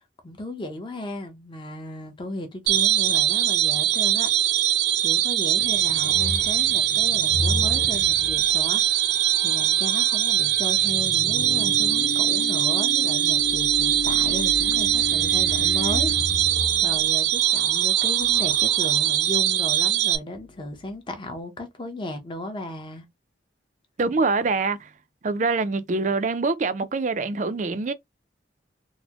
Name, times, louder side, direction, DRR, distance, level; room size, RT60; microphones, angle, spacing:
voice 1, 0.0-4.3 4.6-16.4 16.8-23.1, left 1 dB, 25° left, 0.7 m, -35 dB
sound 1, 2.7-20.2, right 12 dB, 80° right, 0.6 m, -22 dB
sound 2, 5.6-10.2 13.2-19.3 20.3-20.9, left 2 dB, 80° left, 0.4 m, -35 dB
sound 3, 5.6-16.7, left 5 dB, 55° left, 1.7 m, -36 dB
voice 2, 24.0-24.9 25.2-27.9, right 3 dB, 40° right, 0.4 m, -24 dB
4.0 x 2.1 x 2.9 m
head